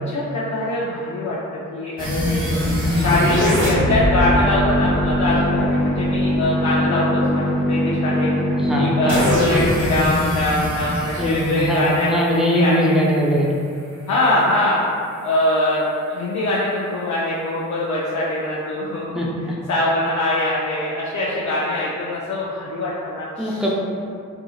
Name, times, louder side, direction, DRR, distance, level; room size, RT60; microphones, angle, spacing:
voice 1, 0.0-1.4 1.7-2.6 3.0-8.3 8.7-12.9 14.1-14.8 15.2-23.7, left 1 dB, 75° left, -7 dB, 0.5 m, -23 dB
sound 1, 2.0-12.9, left 1 dB, 45° right, 1.0 m, -21 dB
voice 2, 8.6-9.2 11.2-13.5 19.1-19.3 23.4-23.7, equal, ahead, -4 dB, 0.4 m, -21 dB
2.8 x 2.7 x 2.3 m, 2.3 s
cardioid pair, 70°, 29 cm